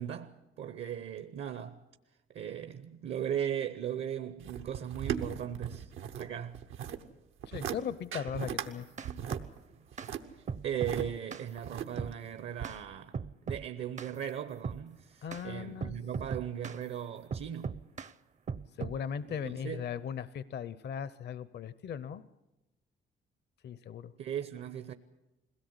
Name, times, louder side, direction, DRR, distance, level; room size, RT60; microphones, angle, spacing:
voice 1, 0.0-1.8 2.3-5.9 6.2-6.6 10.6-13.2 13.5-17.7 19.3-19.8 24.2-24.9, right 9 dB, 65° right, 0.9 m, -38 dB
sound 1, 4.4-6.3 6.5-7.0 7.4-7.8 8.1-8.7 9.0-11.0 11.6-12.2 12.6-12.7, right 9 dB, 85° right, 1.1 m, -37 dB
voice 2, 7.5-8.9 15.2-15.9 18.8-22.2 23.6-24.1, left 8 dB, 60° left, 0.7 m, -38 dB
sound 2, 8.6-9.5 10.0-10.1 10.5-11.5 12.0-12.2 12.6-12.8 13.1-13.7 14.0-14.2 14.6-14.8 15.3-15.4 15.8-16.8 17.3-18.1 18.5-19.0, right 5 dB, 35° right, 0.6 m, -38 dB
21.5 x 17.0 x 8.1 m
cardioid pair, 90°, 20 cm